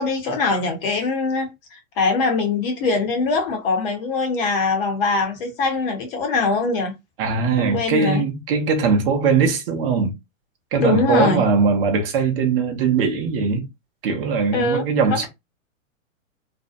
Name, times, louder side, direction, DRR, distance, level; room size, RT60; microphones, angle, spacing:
voice 1, 0.0-6.9 7.6-8.2 10.8-11.4 14.5-15.3, left 3 dB, 40° left, 0.8 m, -22 dB
voice 2, 7.2-10.1 10.7-13.7 14.0-15.3, right 5 dB, 45° right, 0.7 m, -20 dB
2.6 x 2.0 x 2.4 m
hypercardioid pair, 145°, 41 cm